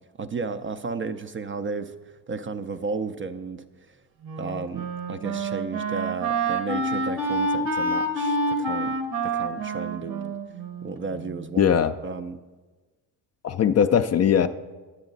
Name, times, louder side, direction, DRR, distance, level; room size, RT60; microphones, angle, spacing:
voice 1, 0.2-1.9 2.3-4.0 4.4-8.9 9.2-10.3 10.8-11.7 12.0-12.4, right 4 dB, 30° right, 10 dB, 0.4 m, -33 dB
Wind instrument woodwind instrument, 4.2-11.4, right 2 dB, 70° right, 1.4 m, -28 dB
voice 2, 11.6-11.9 13.4-14.5, left 8 dB, 35° left, 9 dB, 0.4 m, -20 dB
10.5 x 8.2 x 3.9 m, 1.3 s
supercardioid pair, 70°, 47 cm